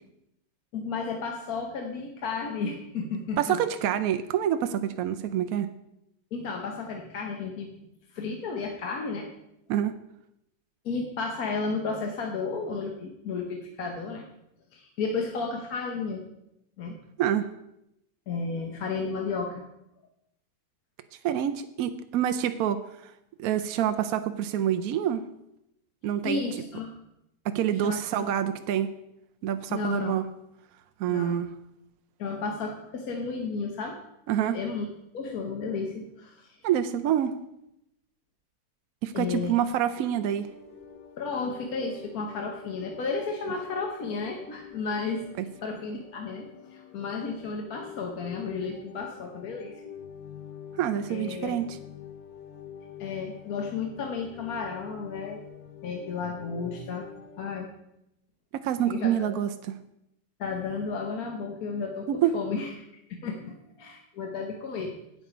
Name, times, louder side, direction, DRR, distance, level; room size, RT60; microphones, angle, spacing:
voice 1, 0.7-3.6 6.3-7.7 8.1-9.3 10.8-14.3 14.7-16.2 16.8-17.0 18.3-19.6 26.2-26.9 27.8-28.3 29.7-30.2 31.1-31.5 32.2-34.0 34.5-34.9 35.1-36.6 39.1-39.6 41.2-45.2 45.6-49.8 51.1-51.5 53.0-55.4 55.8-57.1 57.4-57.7 58.9-59.1 60.4-62.7 63.2-64.9, left 4 dB, 60° left, 1 dB, 1.3 m, -33 dB
voice 2, 3.4-5.7 9.7-9.9 17.2-17.5 21.2-23.1 23.4-25.3 26.0-26.4 27.4-28.9 29.4-30.2 31.0-31.5 34.3-34.6 36.6-37.3 39.0-40.5 45.4-45.5 50.8-51.8 58.5-59.5 62.1-62.3, right 10 dB, 70° right, 8 dB, 0.8 m, -27 dB
sound 1, 40.0-57.5, left 7 dB, 80° left, 1.7 m, -46 dB
8.9 x 7.6 x 5.0 m, 0.82 s
omnidirectional pair, 2.0 m